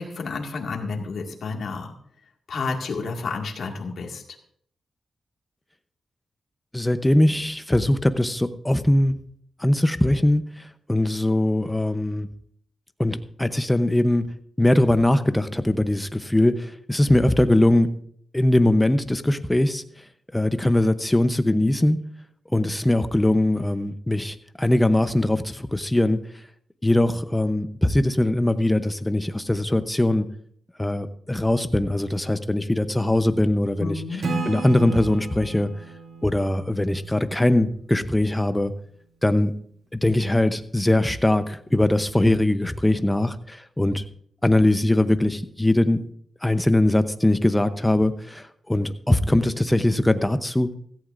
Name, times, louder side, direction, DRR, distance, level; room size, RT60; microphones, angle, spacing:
voice 1, 0.0-1.9 2.5-4.4 33.8-34.2, left 4 dB, 75° left, 2.0 m, -30 dB
voice 2, 6.7-9.1 9.6-12.3 13.0-14.3 14.6-17.9 18.3-19.8 20.3-22.0 22.5-26.2 26.8-30.3 30.8-34.0 34.4-35.7 36.2-38.7 39.2-39.5 39.9-44.0 44.4-46.0 46.4-50.7, left 1 dB, 10° left, 0.8 m, -21 dB
Acoustic guitar / Strum, 34.2-37.8, right 3 dB, 75° right, 2.3 m, -33 dB
16.5 x 14.5 x 2.6 m
cardioid pair, 90°, 0 cm